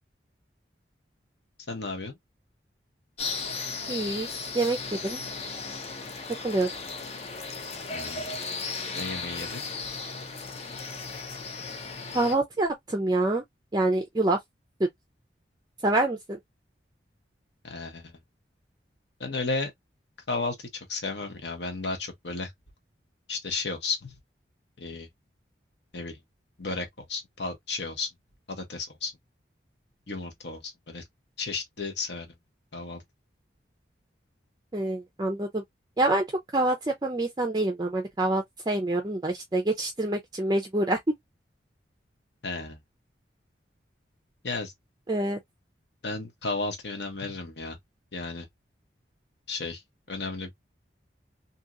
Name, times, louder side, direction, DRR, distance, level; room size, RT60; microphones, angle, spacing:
voice 1, 1.7-2.2 7.9-8.3 8.9-9.6 17.6-18.1 19.2-19.7 20.3-22.5 23.3-24.1 24.8-25.1 25.9-26.2 26.6-28.1 28.5-29.1 30.1-31.0 31.4-32.3 32.7-33.0 42.4-42.8 44.4-44.7 46.0-47.8 48.1-48.5 49.5-49.8 50.1-50.5, left 3 dB, 70° left, 1.0 m, -33 dB
sound 1, 3.2-12.4, left 4 dB, 35° left, 0.5 m, -36 dB
voice 2, 3.9-4.3 4.5-4.8 5.0-5.2 6.4-6.7 12.1-13.4 13.7-14.4 15.8-16.4 34.7-35.6 36.0-36.2 36.5-41.0 45.1-45.4, right 2 dB, 20° right, 0.4 m, -26 dB
2.8 x 2.7 x 2.4 m
head